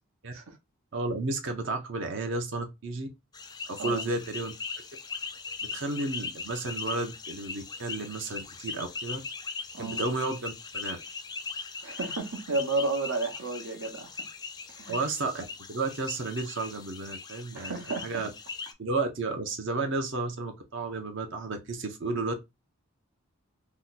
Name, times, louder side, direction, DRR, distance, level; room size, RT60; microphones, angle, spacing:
voice 1, 0.9-3.1 3.7-4.5 5.7-9.2 9.8-11.0 14.9-17.7 18.0-18.3 18.8-22.3, right 3 dB, 60° right, 0.6 m, -32 dB
sound 1, 3.3-18.7, left 5 dB, 20° left, 0.3 m, -40 dB
voice 2, 11.8-14.1 14.8-15.0 17.5-18.2, right 2 dB, 75° right, 1.0 m, -32 dB
2.9 x 2.2 x 3.8 m
head